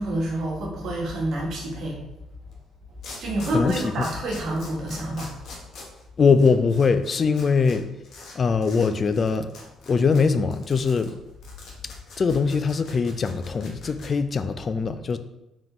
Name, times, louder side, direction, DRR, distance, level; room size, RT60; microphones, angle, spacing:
voice 1, 0.0-2.0 3.2-5.3, right 1 dB, 65° right, -1 dB, 1.2 m, -28 dB
sound 1, 2.5-2.6 3.0-7.8 8.0-8.3 8.6-8.9 9.1-14.1, left 3 dB, 70° left, 1.0 m, -43 dB
voice 2, 3.5-4.1 6.2-7.9 8.4-9.5 9.9-11.2 12.2-15.2, left 5 dB, 45° left, 11 dB, 0.3 m, -22 dB
3.7 x 3.5 x 2.9 m, 0.90 s
supercardioid pair, 70°, 0 cm